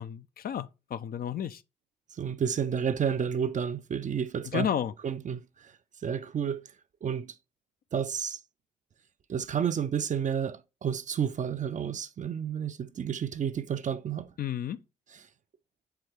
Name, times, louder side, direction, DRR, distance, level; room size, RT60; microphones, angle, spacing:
voice 1, 0.0-1.6 4.4-4.9 14.4-14.8, left 9 dB, 45° left, 0.4 m, -32 dB
voice 2, 2.1-4.7 5.0-5.7 6.0-6.7 7.0-7.4 7.9-8.4 9.3-14.3, right 8 dB, 40° right, 0.5 m, -31 dB
4.7 x 3.5 x 3.3 m
hypercardioid pair, 45°, 20 cm